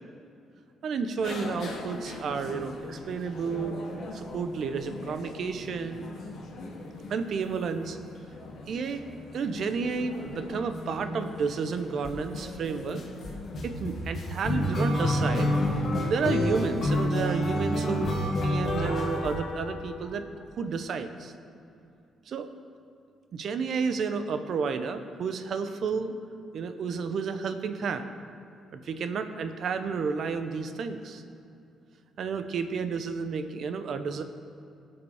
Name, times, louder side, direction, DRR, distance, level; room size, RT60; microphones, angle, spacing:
voice 1, 0.8-3.8 4.1-6.2 7.1-8.0 8.7-9.0 9.3-13.0 13.6-15.5 16.1-20.2 20.6-21.3 22.3-22.5 23.3-26.1 26.5-28.1 28.7-31.2 32.2-34.2, right 5 dB, 60° right, 9 dB, 0.8 m, -31 dB
sound 1, 1.2-17.6, left 2 dB, 65° left, 1.8 m, -42 dB
sound 2, 12.0-12.4 12.9-20.1, left 1 dB, 50° left, 1.6 m, -28 dB
17.0 x 5.9 x 4.9 m, 2.7 s
cardioid pair, 90°, 0 cm